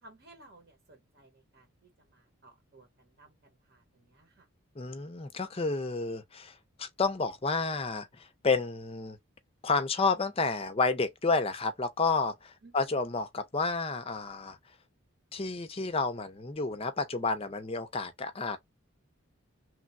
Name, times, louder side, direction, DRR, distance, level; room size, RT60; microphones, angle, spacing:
voice 1, 0.0-4.5 12.6-13.0, right 2 dB, 50° right, 0.9 m, -58 dB
voice 2, 4.8-9.2 9.6-14.6 15.3-18.6, left 4 dB, 25° left, 0.5 m, -30 dB
3.2 x 2.1 x 2.5 m
head